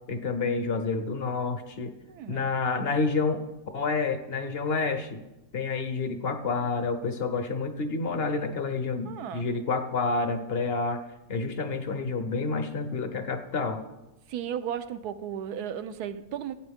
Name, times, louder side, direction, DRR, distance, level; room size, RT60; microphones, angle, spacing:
voice 1, 0.1-1.9 2.3-3.4 3.7-5.2 5.5-11.0 11.3-13.8, left 4 dB, 50° left, 8 dB, 0.8 m, -29 dB
voice 2, 2.1-2.5 9.1-9.5 14.3-16.5, right 9 dB, 75° right, 11 dB, 1.2 m, -35 dB
15.0 x 9.0 x 3.6 m, 0.99 s
omnidirectional pair, 1.8 m